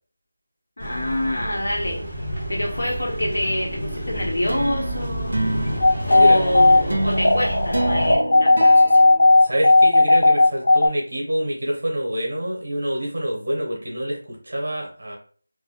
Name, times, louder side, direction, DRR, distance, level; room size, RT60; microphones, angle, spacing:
voice 1, 0.8-2.0 2.5-5.5 6.1-9.1, left 1 dB, 70° left, -1 dB, 1.1 m, -26 dB
sound 1, 0.8-8.2, equal, 5° left, 0.8 m, -30 dB
sound 2, 4.5-10.1, right 1 dB, 55° right, 0.5 m, -28 dB
sound 3, 5.8-10.9, left 2 dB, 40° left, 0.5 m, -15 dB
voice 2, 5.9-6.4 9.4-15.2, equal, 35° right, -1 dB, 0.9 m, -26 dB
3.6 x 2.3 x 2.3 m, 0.43 s
figure-of-eight pair, 180°, 0 cm